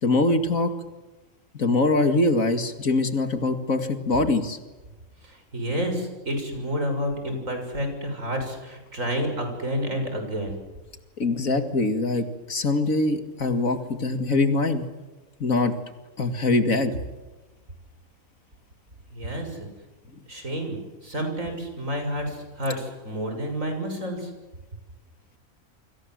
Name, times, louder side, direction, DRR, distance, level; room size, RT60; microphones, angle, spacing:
voice 1, 0.0-0.7 1.5-4.6 11.2-14.8 15.4-15.7 16.2-17.0, left 2 dB, 80° left, 8 dB, 2.7 m, -23 dB
voice 2, 5.2-10.6 19.1-19.7 20.3-24.3, equal, 70° right, 5 dB, 7.0 m, -30 dB
29.0 x 25.0 x 7.9 m, 1.1 s
omnidirectional pair, 1.4 m